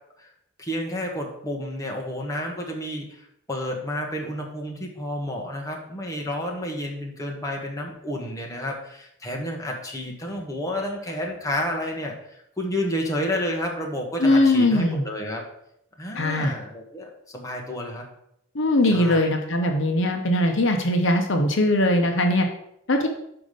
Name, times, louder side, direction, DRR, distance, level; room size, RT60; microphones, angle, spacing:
voice 1, 0.6-15.4 16.0-18.0 18.8-19.3, left 1 dB, 15° left, 0 dB, 1.3 m, -30 dB
voice 2, 14.2-15.0 16.2-16.5 18.5-22.5 22.9-23.1, left 1 dB, 60° left, 3 dB, 0.9 m, -20 dB
5.8 x 5.2 x 6.7 m, 0.75 s
head